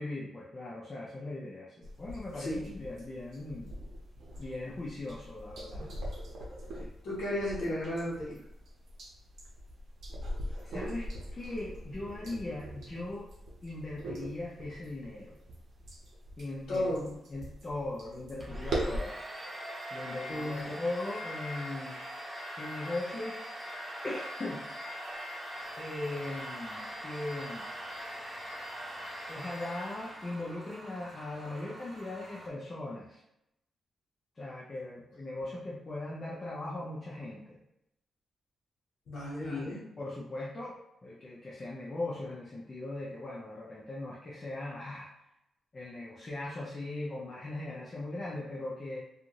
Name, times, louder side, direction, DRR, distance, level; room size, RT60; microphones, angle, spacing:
voice 1, 0.0-3.7 4.4-5.9 6.8-6.9 10.6-11.1 11.4-13.3 13.6-15.4 16.4-17.0 17.3-19.2 19.9-22.0 22.6-23.4 24.0-24.6 25.8-27.6 29.3-33.2 34.4-37.6 39.4-45.1 45.7-49.0, left 2 dB, 30° left, -5 dB, 0.6 m, -39 dB
sound 1, 1.8-19.0, right 1 dB, 75° right, 0.7 m, -41 dB
voice 2, 2.3-2.6 7.0-8.4 16.7-17.1 20.3-20.8 39.1-39.8, left 1 dB, 80° left, -9 dB, 1.0 m, -34 dB
Domestic sounds home sounds, 18.4-30.5, equal, 20° right, 0.7 m, -42 dB
sound 2, 25.5-32.5, right 1 dB, 45° right, 0.9 m, -51 dB
2.5 x 2.5 x 2.9 m, 0.84 s
cardioid pair, 105°, 0 cm